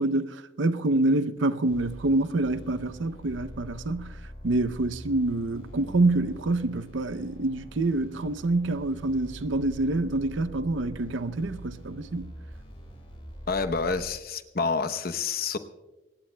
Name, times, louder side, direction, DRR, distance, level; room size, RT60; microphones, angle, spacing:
voice 1, 0.0-4.2 4.4-12.3, right 2 dB, 80° right, 0.6 m, -26 dB
sound 1, 1.7-14.1, equal, 30° left, 5.5 m, -44 dB
voice 2, 13.5-15.6, left 4 dB, 50° left, 0.8 m, -28 dB
24.5 x 20.0 x 2.2 m
head